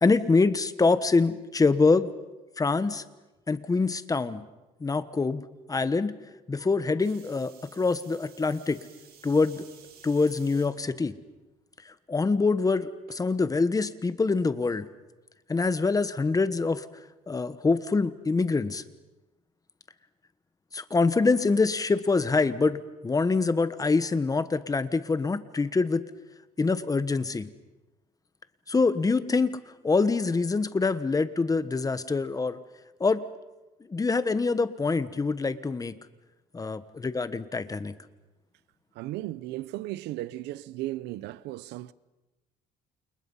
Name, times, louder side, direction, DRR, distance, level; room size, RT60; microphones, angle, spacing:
voice 1, 0.0-2.1 2.6-3.0 3.5-4.4 4.8-5.4 5.7-6.1 6.5-8.8 9.2-9.7 10.0-11.1 11.8-14.9 15.5-16.8 17.3-18.8 20.7-26.0 26.6-27.5 28.7-29.6 29.8-32.6 33.0-33.2 33.9-35.9 36.5-37.9, left 4 dB, 20° left, 1.3 m, -25 dB
sound 1, 7.0-10.7 11.4-11.8 13.1-13.2, right 8 dB, 65° right, 6.2 m, -54 dB
voice 2, 38.9-41.9, right 16 dB, 90° right, 0.8 m, -35 dB
29.5 x 28.5 x 5.6 m
cardioid pair, 110°, 17 cm